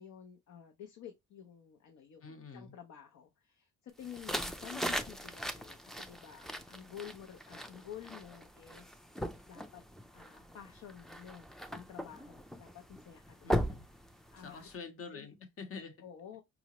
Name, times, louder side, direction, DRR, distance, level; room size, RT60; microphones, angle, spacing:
voice 1, 0.0-9.8 10.1-13.7 14.1-14.7 15.1-15.3 16.0-16.4, left 9 dB, 70° left, 0.7 m, -51 dB
voice 2, 2.2-2.8 13.4-13.9 14.4-16.0, left 5 dB, 50° left, 0.9 m, -47 dB
sound 1, 4.0-14.7, equal, ahead, 0.4 m, -40 dB
4.9 x 2.0 x 2.9 m
cardioid pair, 90°, 30 cm